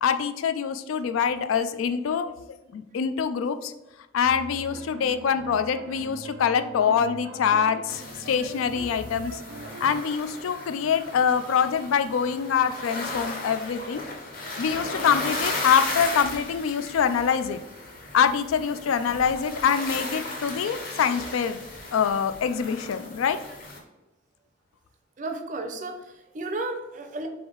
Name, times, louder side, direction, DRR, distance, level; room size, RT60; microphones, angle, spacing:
voice 1, 0.0-3.7 4.1-9.4 9.8-14.0 14.6-17.6 18.1-21.6 21.9-23.4, left 7 dB, 90° left, 11 dB, 0.3 m, -25 dB
sound 1, 4.2-10.0, right 3 dB, 90° right, 0.5 m, -42 dB
sound 2, 7.9-23.8, left 2 dB, 45° left, 0.8 m, -36 dB
voice 2, 25.2-27.3, right 2 dB, 40° right, 5 dB, 0.5 m, -33 dB
3.5 x 3.4 x 3.8 m, 0.97 s
head